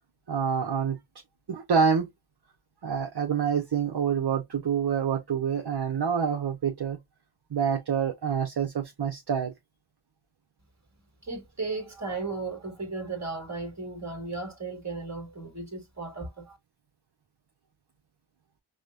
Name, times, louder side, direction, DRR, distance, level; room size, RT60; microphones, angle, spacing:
voice 1, 0.3-1.0 1.5-2.1 2.8-7.0 7.5-9.5, right 7 dB, 55° right, 0.7 m, -27 dB
voice 2, 11.2-16.6, right 3 dB, 35° right, 1.5 m, -35 dB
5.0 x 2.1 x 2.4 m
wide cardioid pair, 60°, 47 cm